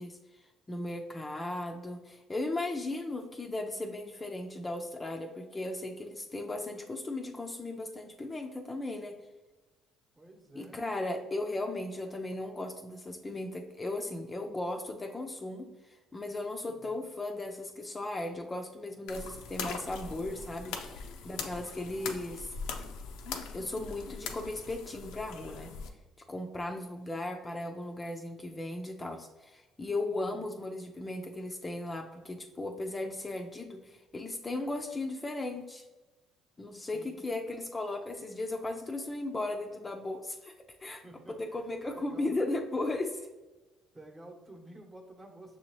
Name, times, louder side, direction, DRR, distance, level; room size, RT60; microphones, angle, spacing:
voice 1, 0.0-9.2 10.5-22.5 23.5-25.7 26.3-35.8 36.6-40.5 40.8-41.0 41.3-43.3, left 2 dB, 25° left, 3 dB, 0.5 m, -36 dB
voice 2, 10.1-10.8 16.6-17.1 30.1-30.6 36.7-37.4 41.0-41.6 41.9-42.3 43.9-45.6, right 1 dB, 20° right, 3 dB, 1.0 m, -52 dB
sound 1, 19.1-25.9, left 5 dB, 80° left, 0.5 m, -41 dB
6.1 x 2.8 x 3.0 m, 1.1 s
supercardioid pair, 70°, 0 cm